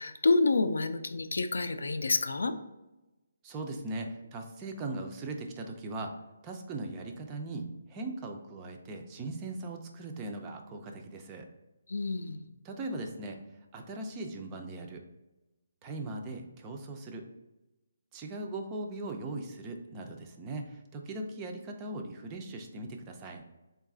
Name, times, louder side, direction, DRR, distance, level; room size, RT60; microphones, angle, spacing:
voice 1, 0.0-2.5 11.9-12.4, left 3 dB, 85° left, 9 dB, 0.4 m, -28 dB
voice 2, 3.4-6.1 6.4-11.5 12.6-13.4 13.7-15.0 15.8-17.3 18.1-23.4, right 2 dB, 15° right, 3 dB, 0.3 m, -39 dB
3.9 x 2.3 x 3.6 m, 1.0 s
hypercardioid pair, 170°, 0 cm